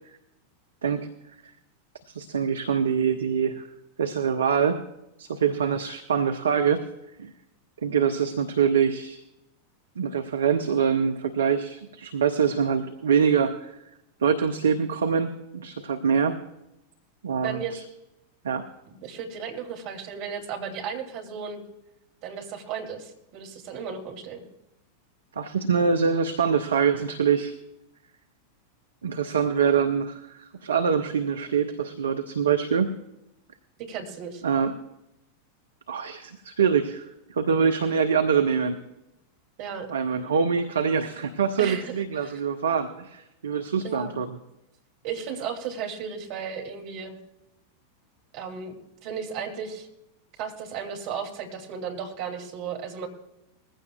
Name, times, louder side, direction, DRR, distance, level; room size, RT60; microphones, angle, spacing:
voice 1, 2.1-3.7 4.0-4.8 5.2-6.8 7.2-7.3 7.8-9.2 10.0-13.8 14.2-16.4 17.2-17.8 18.4-18.6 25.4-27.5 29.0-32.9 34.4-34.8 35.9-38.8 39.9-44.4, right 6 dB, 65° right, 7 dB, 0.7 m, -24 dB
voice 2, 17.4-17.8 18.9-21.6 22.2-24.4 33.8-34.4 39.6-39.9 41.6-42.4 43.8-44.2 45.0-47.2 48.3-48.8 49.0-49.9 50.4-53.1, right 7 dB, 45° right, 2 dB, 2.5 m, -35 dB
20.5 x 15.5 x 2.3 m, 0.90 s
figure-of-eight pair, 90°, 0 cm